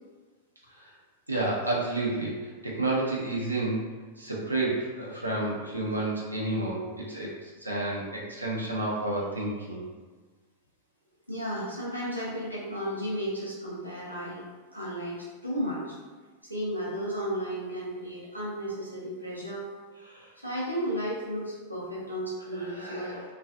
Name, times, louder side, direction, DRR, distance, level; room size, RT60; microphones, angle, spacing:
voice 1, 1.3-7.3 7.6-9.8 20.1-20.3 22.5-23.2, right 2 dB, 85° right, -4 dB, 0.5 m, -30 dB
voice 2, 11.3-14.4 14.7-16.0 16.4-19.7 20.4-23.1, equal, 90° left, -6 dB, 0.6 m, -33 dB
2.4 x 2.3 x 2.2 m, 1.4 s
figure-of-eight pair, 90°, 0 cm